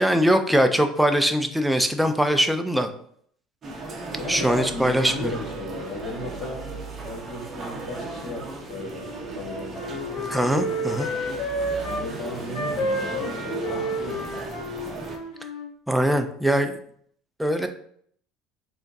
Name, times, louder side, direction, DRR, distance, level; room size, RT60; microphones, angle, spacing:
voice 1, 0.0-2.9 4.3-5.3 10.3-11.1 15.9-16.8 17.4-17.7, equal, 5° right, 6 dB, 0.4 m, -22 dB
sound 1, 3.6-15.2, right 3 dB, 25° right, 0.8 m, -36 dB
voice 2, 4.1-6.6 7.0-9.9 11.8-14.2, left 2 dB, 30° left, -5 dB, 1.7 m, -35 dB
Wind instrument woodwind instrument, 8.9-12.0 12.5-15.7, equal, 65° left, 1.8 m, -30 dB
3.6 x 3.4 x 4.0 m, 0.63 s
cardioid pair, 145°, 0 cm